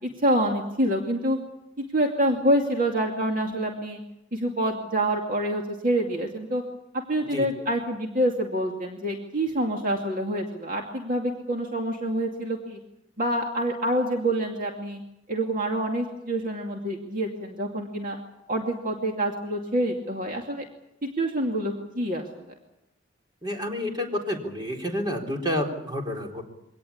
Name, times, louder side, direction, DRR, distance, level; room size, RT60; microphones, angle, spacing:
voice 1, 0.0-1.4 1.9-4.0 4.3-6.6 7.1-12.8 13.2-15.0 15.3-18.2 18.5-20.6 21.2-22.4, right 1 dB, 45° right, 1 dB, 2.5 m, -26 dB
voice 2, 23.4-26.4, left 1 dB, 25° right, 2 dB, 4.1 m, -29 dB
24.0 x 18.5 x 8.6 m, 0.84 s
head